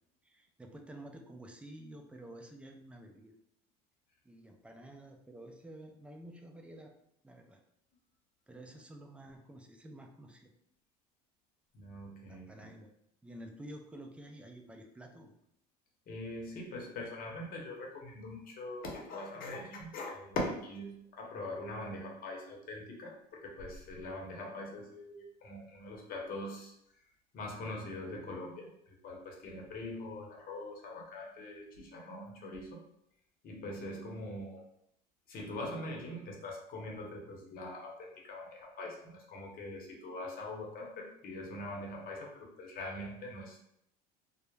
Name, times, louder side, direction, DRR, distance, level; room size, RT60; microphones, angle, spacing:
voice 1, 0.2-3.3 4.2-6.9 7.2-7.6 8.5-10.5 12.3-12.9 13.2-15.3, right 1 dB, 5° right, 3 dB, 0.3 m, -50 dB
voice 2, 11.7-12.7 16.1-27.0 27.3-32.8 33.4-34.6 35.3-43.6, left 1 dB, 45° left, 0 dB, 0.8 m, -42 dB
2.2 x 2.0 x 3.1 m, 0.75 s
supercardioid pair, 105°, 20 cm